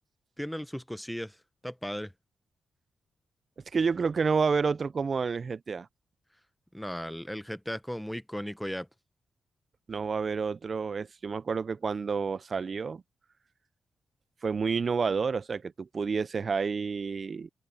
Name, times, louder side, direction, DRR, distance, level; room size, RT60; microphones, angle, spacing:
voice 1, 0.4-1.4 1.6-2.1 6.7-8.9, equal, 5° left, 1.0 m, -36 dB
voice 2, 3.7-5.9 9.9-13.0 14.4-17.5, right 5 dB, 50° right, 0.5 m, -29 dB
open air
cardioid pair, 65°, 0 cm